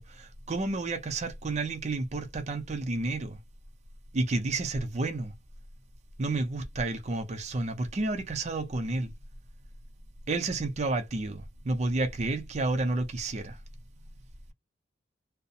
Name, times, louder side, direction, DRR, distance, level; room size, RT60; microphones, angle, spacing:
voice 1, 0.0-3.4 4.1-5.3 6.2-9.1 10.3-13.6, right 2 dB, 35° right, 0.5 m, -30 dB
2.6 x 2.0 x 2.4 m
head